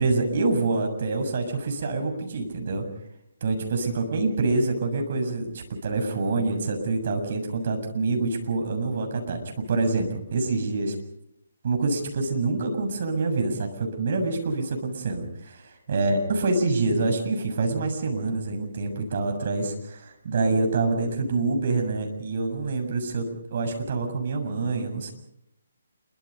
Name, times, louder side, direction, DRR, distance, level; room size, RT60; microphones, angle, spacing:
voice 1, 0.0-2.8 3.4-10.9 11.6-15.6 15.9-23.3 23.5-25.1, right 3 dB, 50° right, 4 dB, 7.0 m, -26 dB
27.5 x 24.5 x 5.3 m, 0.78 s
figure-of-eight pair, 140°, 0 cm